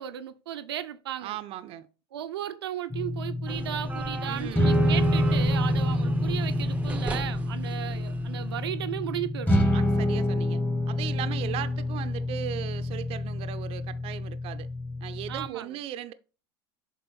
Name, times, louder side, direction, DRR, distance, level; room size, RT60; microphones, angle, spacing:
voice 1, 0.0-1.4 2.1-9.5 15.3-15.8, right 11 dB, 85° right, 0.7 m, -35 dB
voice 2, 1.2-1.9 4.3-4.8 9.7-10.6 10.9-14.7 15.0-16.1, right 11 dB, 50° right, 0.6 m, -37 dB
sound 1, 2.9-15.5, left 1 dB, 15° left, 1.2 m, -27 dB
sound 2, 3.5-8.9, right 3 dB, 10° right, 0.6 m, -40 dB
7.0 x 3.7 x 4.2 m
hypercardioid pair, 85°, 13 cm